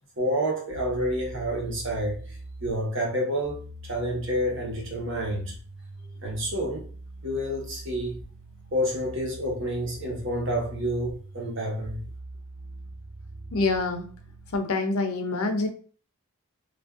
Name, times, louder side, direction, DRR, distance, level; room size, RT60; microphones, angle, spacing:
voice 1, 0.2-5.5 6.2-6.9 7.2-8.2 8.7-12.0, equal, 55° right, 1.1 m, -29 dB
sound 1, 0.7-14.6, equal, 75° right, 1.5 m, -43 dB
voice 2, 13.5-14.1 14.5-15.7, left 3 dB, 75° left, 0.6 m, -26 dB
3.3 x 2.5 x 2.4 m
head